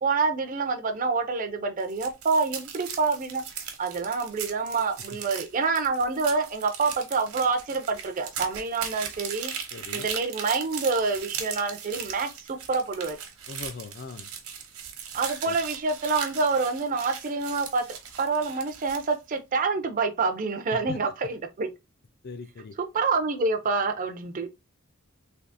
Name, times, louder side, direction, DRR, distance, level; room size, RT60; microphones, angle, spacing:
voice 1, 0.0-3.4 3.8-9.5 9.9-13.2 15.1-17.8 18.2-21.7 22.9-24.5, right 4 dB, 40° right, 0.4 m, -27 dB
sound 1, 1.8-19.2, right 7 dB, 80° right, 0.8 m, -38 dB
voice 2, 9.7-10.1 13.5-14.3 15.4-15.6 20.7-21.0 22.2-22.7, left 4 dB, 45° left, 0.4 m, -39 dB
3.4 x 2.7 x 2.6 m
head